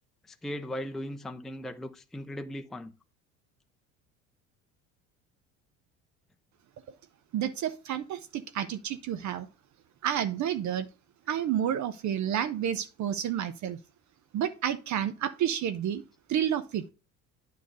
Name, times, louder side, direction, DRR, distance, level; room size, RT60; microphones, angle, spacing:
voice 1, 0.2-2.9, left 1 dB, ahead, 0.6 m, -38 dB
voice 2, 7.3-9.5 10.0-10.9 11.3-13.8 14.3-16.0 16.3-16.8, right 10 dB, 45° right, 0.7 m, -30 dB
9.1 x 3.3 x 6.6 m
hypercardioid pair, 65°, 41 cm